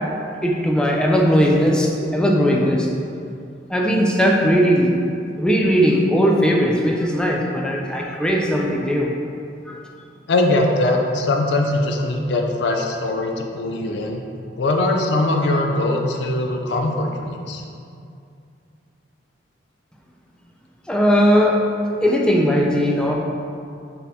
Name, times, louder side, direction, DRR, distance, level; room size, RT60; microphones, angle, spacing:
voice 1, 0.4-2.9 3.7-4.9 5.4-9.1 9.7-9.8 20.9-21.6 22.0-23.2, equal, 5° left, -1 dB, 0.4 m, -18 dB
voice 2, 10.3-14.2 14.6-17.6, left 2 dB, 65° left, 2 dB, 0.4 m, -21 dB
4.1 x 3.6 x 2.7 m, 2.4 s
head